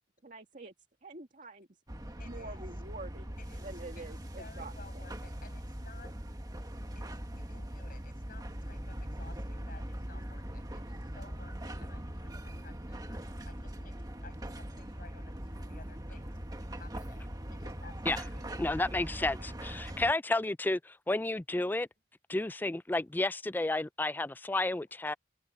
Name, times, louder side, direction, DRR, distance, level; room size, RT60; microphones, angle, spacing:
voice 1, 0.2-0.7 1.0-1.7 2.2-5.1, right 2 dB, 45° right, 2.0 m, -47 dB
sound 1, 1.9-20.1, right 1 dB, 20° right, 1.6 m, -41 dB
voice 2, 2.2-2.6 3.4-6.1 7.0-13.2 13.4-16.4 16.7-18.7 19.2-19.5, left 4 dB, 55° left, 7.4 m, -56 dB
voice 3, 18.6-19.4 19.6-21.9 22.3-25.1, left 2 dB, 10° left, 0.4 m, -31 dB
head